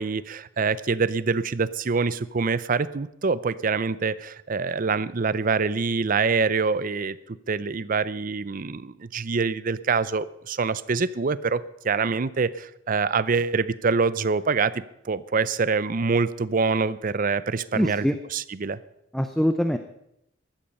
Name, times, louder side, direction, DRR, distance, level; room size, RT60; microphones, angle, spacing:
voice 1, 0.0-18.0 18.3-18.8, right 4 dB, 45° right, 17 dB, 0.5 m, -25 dB
voice 2, 17.7-18.2 19.1-19.8, equal, ahead, 8 dB, 0.6 m, -23 dB
15.5 x 11.5 x 5.5 m, 0.81 s
head